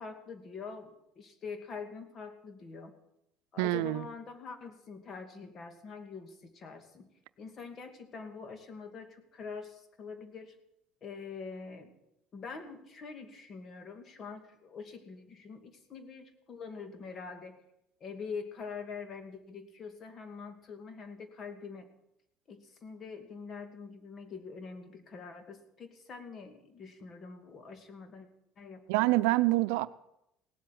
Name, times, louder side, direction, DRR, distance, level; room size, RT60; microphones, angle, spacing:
voice 1, 0.0-2.9 3.5-7.1 7.4-10.5 11.0-12.0 12.3-17.6 18.0-21.9 22.5-28.3 28.6-29.3, left 5 dB, 45° left, 7 dB, 2.5 m, -45 dB
voice 2, 3.6-4.0 28.9-29.9, right 19 dB, 85° right, 14 dB, 0.6 m, -26 dB
18.0 x 7.8 x 9.5 m, 0.82 s
supercardioid pair, 95°, 0 cm